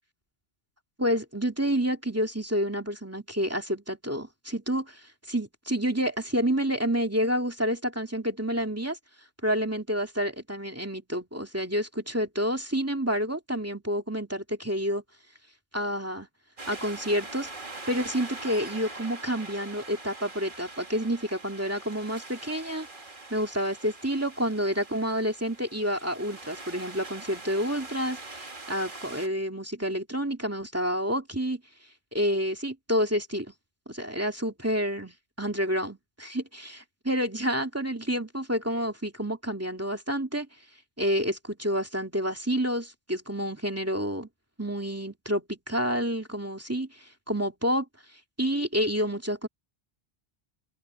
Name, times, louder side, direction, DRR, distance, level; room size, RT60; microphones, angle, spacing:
voice 1, 1.0-5.0 5.3-9.0 9.4-15.0 15.7-16.3 16.7-17.5 17.9-22.9 23.3-31.6 32.1-33.5 33.9-40.5 41.0-44.3 44.6-47.9 48.4-49.5, equal, 15° right, 2.5 m, -29 dB
sound 1, 16.6-29.3, right 2 dB, 50° right, 2.5 m, -43 dB
open air
omnidirectional pair, 1.1 m